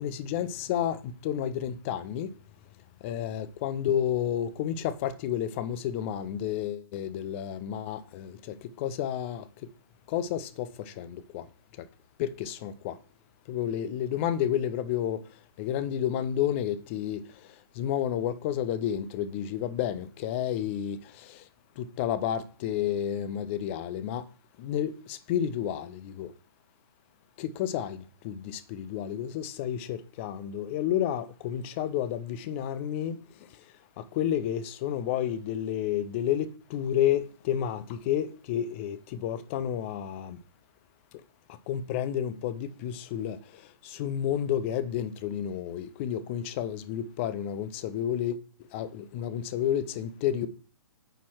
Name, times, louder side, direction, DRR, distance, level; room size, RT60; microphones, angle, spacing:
voice 1, 0.0-2.3 3.0-9.7 10.1-11.5 11.8-11.9 12.2-13.0 13.5-15.2 15.6-21.5 21.8-24.2 24.6-26.3 27.4-33.6 34.0-40.4 41.7-48.4 48.7-50.5, left 10 dB, 30° left, 0.6 m, -31 dB
9.1 x 4.4 x 4.4 m
figure-of-eight pair, 120°, 13 cm